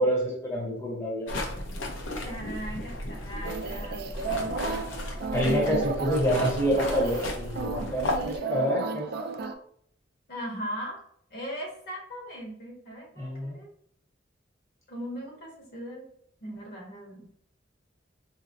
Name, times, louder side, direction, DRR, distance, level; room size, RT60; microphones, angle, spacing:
voice 1, 0.0-1.4 5.3-9.1 13.2-13.6, equal, 15° left, -3 dB, 0.7 m, -27 dB
sound 1, 1.3-8.4, left 1 dB, 80° left, 0.6 m, -34 dB
voice 2, 2.2-4.1 5.3-5.9 10.3-11.0 11.3-13.7 14.9-16.0 16.4-17.3, right 1 dB, 55° left, -1 dB, 1.1 m, -38 dB
sound 2, 3.4-9.5, right 4 dB, 55° right, 0.3 m, -34 dB
4.0 x 2.0 x 2.6 m, 0.65 s
head